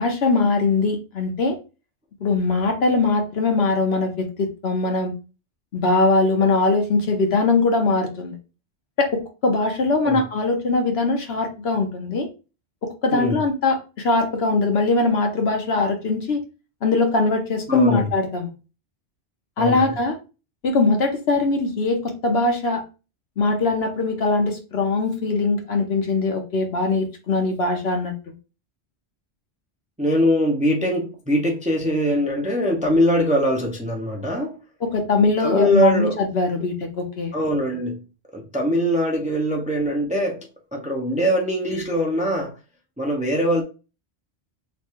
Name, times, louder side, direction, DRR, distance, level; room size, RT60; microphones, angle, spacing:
voice 1, 0.0-1.6 2.2-5.1 5.7-8.3 9.0-12.3 12.8-16.4 16.8-18.5 19.6-20.2 20.6-22.8 23.4-28.1 34.8-37.3, left 3 dB, 65° left, 1.1 m, -21 dB
voice 2, 13.1-13.4 17.7-18.1 19.6-20.0 30.0-34.6 35.4-36.2 37.3-38.0 38.3-40.5 40.7-42.6 43.0-43.6, equal, 10° right, 0.5 m, -22 dB
3.2 x 2.3 x 4.3 m
omnidirectional pair, 1.1 m